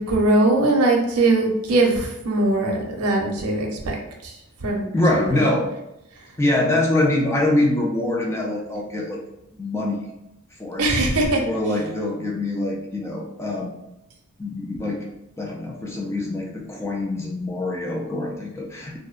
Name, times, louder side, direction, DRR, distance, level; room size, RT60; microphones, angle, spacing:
voice 1, 0.0-4.3 4.6-5.4 10.8-11.4, right 2 dB, 85° right, 1 dB, 0.6 m, -21 dB
voice 2, 4.9-5.7 6.4-9.2 9.5-10.0 10.6-10.9 11.5-13.7 14.4-15.1 15.4-18.9, left 1 dB, 10° left, -2 dB, 0.3 m, -24 dB
2.6 x 2.0 x 2.3 m, 0.88 s
head